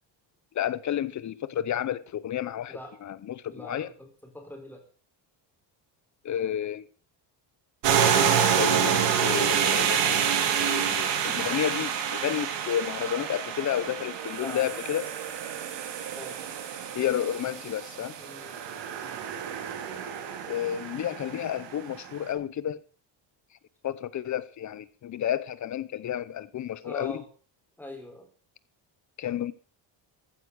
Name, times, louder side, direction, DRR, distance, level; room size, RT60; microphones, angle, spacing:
voice 1, 0.5-3.9 6.2-6.9 8.6-10.3 10.6-15.1 16.9-18.1 20.5-22.8 23.8-27.2 29.2-29.5, left 10 dB, 40° left, 0.7 m, -31 dB
voice 2, 3.5-4.8 14.4-14.7 16.2-16.4 18.2-18.6 26.8-27.3 27.8-28.3, left 1 dB, 5° left, 3.9 m, -42 dB
sound 1, 7.8-22.0, right 8 dB, 65° right, 2.9 m, -28 dB
15.0 x 9.3 x 6.4 m
cardioid pair, 170°, 46 cm